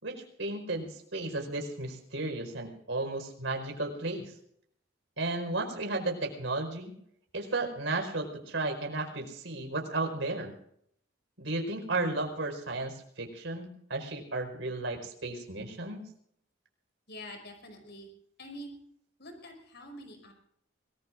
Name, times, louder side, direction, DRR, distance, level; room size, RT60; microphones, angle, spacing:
voice 1, 0.0-4.3 5.2-6.9 7.3-10.5 11.4-16.0, right 2 dB, 70° right, 3 dB, 4.9 m, -34 dB
voice 2, 17.1-18.1 18.4-18.8 19.2-20.3, equal, 60° left, 4 dB, 5.7 m, -45 dB
25.5 x 20.0 x 2.6 m, 0.70 s
head